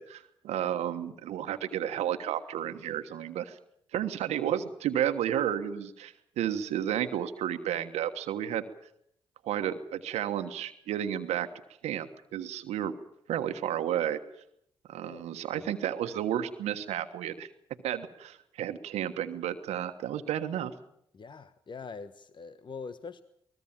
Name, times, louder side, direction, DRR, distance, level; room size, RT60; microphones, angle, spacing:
voice 1, 0.0-3.6 3.9-8.6 9.4-11.5 11.8-12.9 13.3-14.2 14.9-17.5 17.8-20.7, right 10 dB, 80° right, 8 dB, 1.4 m, -32 dB
voice 2, 21.1-23.2, left 5 dB, 45° left, 12 dB, 1.2 m, -43 dB
22.5 x 19.5 x 7.3 m, 0.71 s
supercardioid pair, 50°, 11 cm